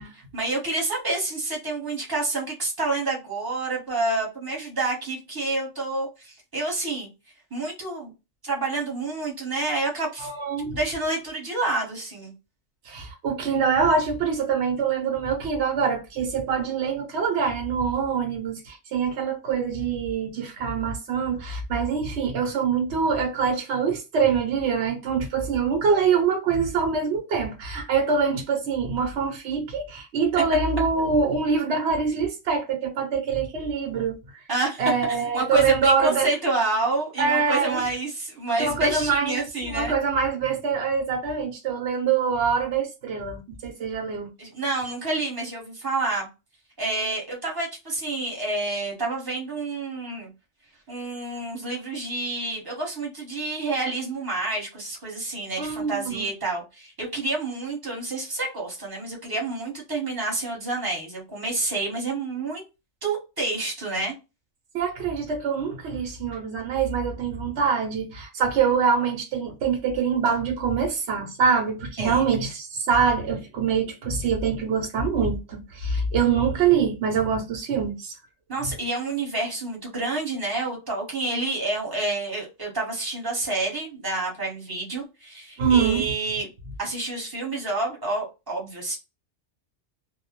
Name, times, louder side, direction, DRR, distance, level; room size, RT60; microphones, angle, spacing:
voice 1, 0.1-7.1 7.5-8.1 8.4-10.3 10.7-12.3 34.5-34.8 35.1-40.0 44.4-46.3 46.8-50.3 50.9-62.6 63.0-64.1 72.0-72.2 78.5-86.5 86.8-89.0, right 2 dB, 20° right, 0.9 m, -28 dB
voice 2, 10.2-10.8 12.8-34.4 34.8-36.3 37.2-37.8 38.6-39.4 39.7-44.3 55.6-56.2 64.7-78.1 78.6-78.7 85.6-86.1, right 5 dB, 70° right, 0.8 m, -24 dB
2.1 x 2.1 x 2.8 m
omnidirectional pair, 1.3 m